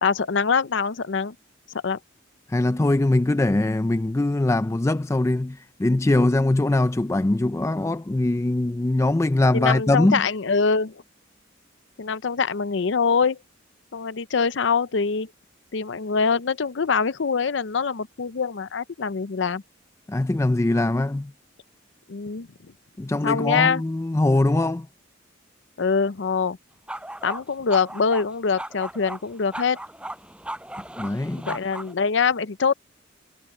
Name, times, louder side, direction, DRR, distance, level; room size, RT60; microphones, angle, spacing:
voice 1, 0.0-1.4 1.8-2.0 9.5-11.0 12.0-13.4 13.9-15.3 15.7-19.6 22.1-22.5 23.2-23.8 25.8-26.6 27.2-29.8 31.5-32.7, left 5 dB, 70° left, 0.6 m, -24 dB
voice 2, 2.5-10.2 20.1-21.3 23.0-24.9 31.0-31.6, left 2 dB, 15° left, 0.3 m, -22 dB
sound 1, 26.9-27.4 27.7-28.3 28.6-31.9, right 1 dB, 5° right, 5.2 m, -36 dB
head